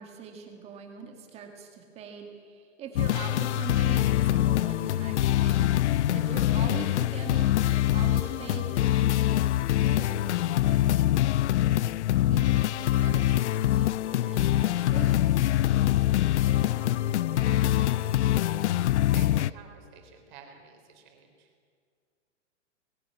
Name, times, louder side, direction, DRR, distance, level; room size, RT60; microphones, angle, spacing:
voice 1, 0.0-11.1 12.3-15.9, right 6 dB, 15° right, 3 dB, 1.9 m, -42 dB
sound 1, 3.0-19.5, left 13 dB, 70° left, 0.5 m, -24 dB
voice 2, 16.3-17.0 17.3-21.5, right 5 dB, 40° right, 3 dB, 3.6 m, -50 dB
20.0 x 14.5 x 9.7 m, 2.1 s
hypercardioid pair, 170°, 36 cm